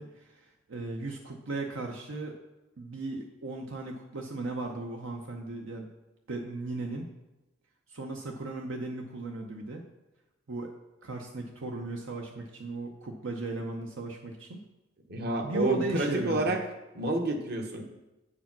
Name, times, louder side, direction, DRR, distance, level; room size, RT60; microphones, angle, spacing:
voice 1, 0.0-2.4 2.8-5.9 6.3-7.1 7.9-9.8 10.5-10.7 11.0-14.6 15.4-16.5, right 2 dB, 75° right, 2 dB, 0.8 m, -36 dB
voice 2, 15.1-16.6 16.9-17.8, right 1 dB, 55° right, 4 dB, 1.1 m, -29 dB
8.3 x 4.9 x 5.9 m, 1.0 s
head